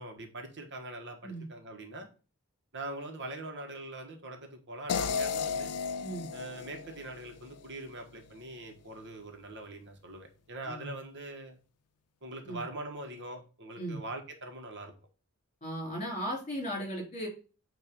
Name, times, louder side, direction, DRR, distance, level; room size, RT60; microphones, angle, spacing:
voice 1, 0.0-2.1 2.7-5.8 6.3-11.6 12.2-14.9, right 2 dB, 55° right, 4 dB, 1.5 m, -43 dB
sound 1, 4.9-8.0, left 6 dB, 85° left, 0.5 m, -35 dB
voice 2, 15.6-17.3, equal, 30° left, 0 dB, 3.3 m, -36 dB
8.7 x 3.0 x 5.3 m, 0.34 s
head